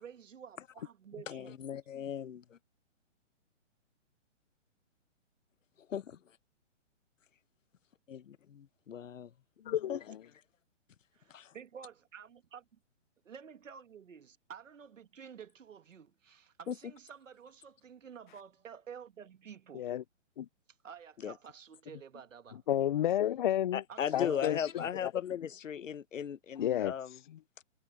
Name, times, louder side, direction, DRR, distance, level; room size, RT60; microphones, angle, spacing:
voice 1, 0.0-1.6 11.1-12.6 13.3-19.9 20.8-22.6 23.9-24.9, right 7 dB, 85° right, 1.8 m, -51 dB
voice 2, 1.3-2.4 5.9-6.2 8.1-9.3 9.9-10.0 11.3-11.5 16.7-16.8 21.2-21.3 23.7-27.2, left 8 dB, 85° left, 1.0 m, -37 dB
voice 3, 9.6-10.2 19.7-20.0 20.4-20.5 22.7-23.8 24.1-24.8 26.6-26.9, left 11 dB, 40° left, 0.4 m, -31 dB
hypercardioid pair, 155°, 37 cm